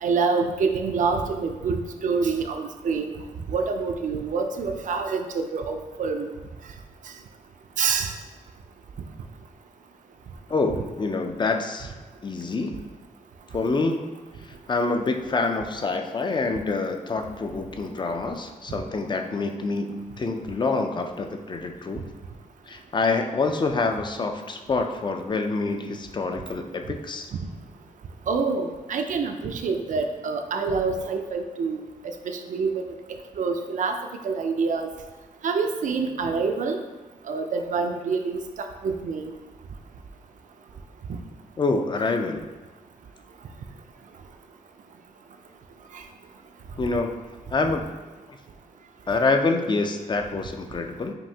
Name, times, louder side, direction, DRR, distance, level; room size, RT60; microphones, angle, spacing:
voice 1, 0.0-3.1 3.5-6.3 7.8-8.1 28.3-32.8 33.4-34.0 34.2-34.9 35.4-36.8 37.3-39.3 45.9-46.0, right 4 dB, 70° right, 6 dB, 0.4 m, -26 dB
voice 2, 10.5-11.9 12.2-12.8 13.5-14.1 14.7-22.1 22.7-27.3 41.6-42.4 46.8-47.2 47.5-47.9 49.1-51.1, left 3 dB, 35° left, 5 dB, 0.4 m, -26 dB
5.2 x 2.7 x 2.7 m, 1.2 s
wide cardioid pair, 105°, 13 cm